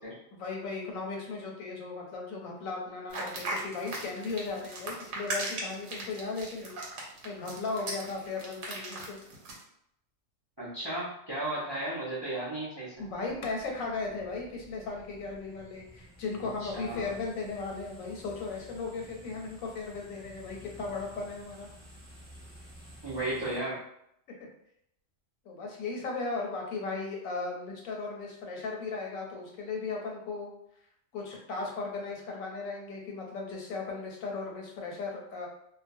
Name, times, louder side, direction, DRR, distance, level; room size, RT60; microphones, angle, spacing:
voice 1, 0.3-6.7 7.2-9.2 11.5-11.6 13.0-21.7 24.3-24.5 25.4-30.5 31.1-35.5, left 4 dB, 90° left, -1 dB, 1.1 m, -36 dB
sound 1, 3.1-9.6, right 2 dB, 65° right, 0.9 m, -38 dB
voice 2, 10.6-12.9 16.6-17.1 23.0-23.8, right 1 dB, 40° right, -7 dB, 0.3 m, -34 dB
sound 2, 12.9-23.6, equal, 5° right, 1.0 m, -52 dB
2.3 x 2.1 x 2.5 m, 0.75 s
omnidirectional pair, 1.4 m